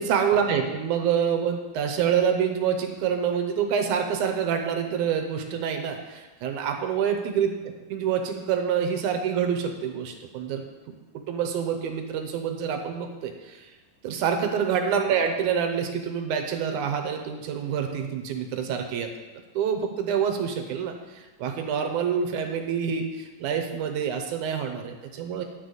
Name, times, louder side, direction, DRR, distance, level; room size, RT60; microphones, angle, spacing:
voice 1, 0.0-7.6 7.9-10.6 10.9-11.0 11.3-13.7 14.0-19.1 19.5-25.4, right 7 dB, 75° right, 5 dB, 2.1 m, -27 dB
10.0 x 8.1 x 3.9 m, 1.2 s
omnidirectional pair, 3.9 m